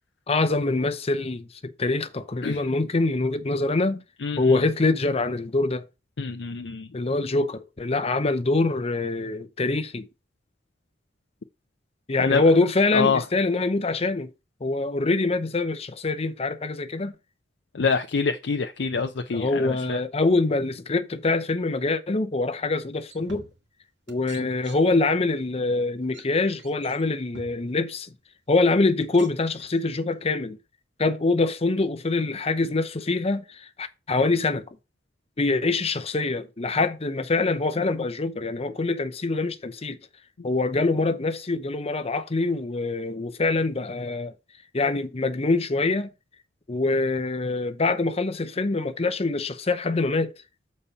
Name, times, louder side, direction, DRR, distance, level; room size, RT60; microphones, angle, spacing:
voice 1, 0.3-4.0 4.4-5.9 6.9-10.1 12.1-14.3 14.6-17.1 19.3-23.5 24.1-28.1 28.5-30.6 31.0-34.6 35.4-40.0 40.4-44.3 44.7-46.1 46.7-50.3, left 3 dB, 35° left, 0.7 m, -24 dB
voice 2, 4.2-4.6 6.2-6.9 12.2-12.4 12.9-13.2 17.7-20.0, left 5 dB, 70° left, 0.5 m, -26 dB
sound 1, 22.5-22.7 23.0-23.8 24.1-25.1 25.4-25.6 26.0-26.2 26.6-27.8 28.5-28.6 29.0-30.3, right 3 dB, 85° right, 2.1 m, -48 dB
7.0 x 4.2 x 5.5 m
head